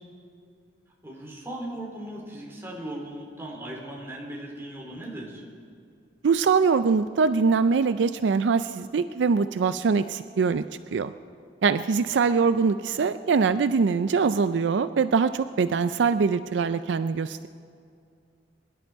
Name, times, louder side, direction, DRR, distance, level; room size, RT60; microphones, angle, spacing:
voice 1, 1.0-5.4 12.3-12.4, right 1 dB, 15° right, -3 dB, 3.3 m, -38 dB
voice 2, 6.2-10.7 10.9-11.1 11.6-17.5, right 5 dB, 70° right, 12 dB, 0.4 m, -23 dB
23.5 x 11.5 x 4.6 m, 2.3 s
head